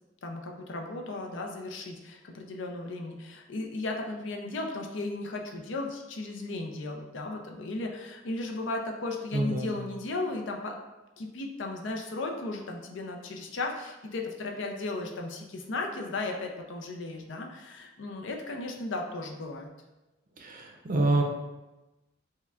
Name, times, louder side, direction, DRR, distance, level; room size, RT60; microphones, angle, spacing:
voice 1, 0.2-10.8 11.2-19.7, left 2 dB, 70° left, 2 dB, 0.5 m, -35 dB
voice 2, 9.3-9.8 20.4-21.2, right 2 dB, 45° right, 1 dB, 0.5 m, -27 dB
5.6 x 2.2 x 2.4 m, 1.0 s
head